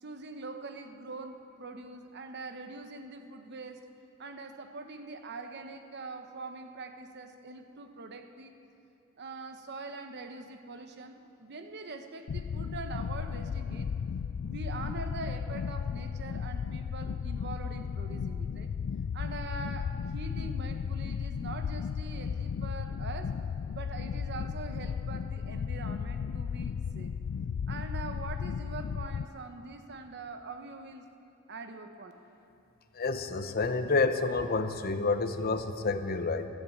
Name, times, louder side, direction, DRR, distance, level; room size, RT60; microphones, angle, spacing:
voice 1, 0.0-3.8 4.2-8.5 9.2-13.9 14.4-18.7 19.1-23.4 23.7-27.1 27.7-31.1 31.5-32.1, right 3 dB, 55° right, 6 dB, 1.0 m, -43 dB
sound 1, 12.3-29.2, left 6 dB, 65° left, 0.3 m, -35 dB
voice 2, 32.9-36.5, left 3 dB, 45° left, 9 dB, 0.8 m, -29 dB
13.0 x 12.5 x 8.5 m, 2.7 s
head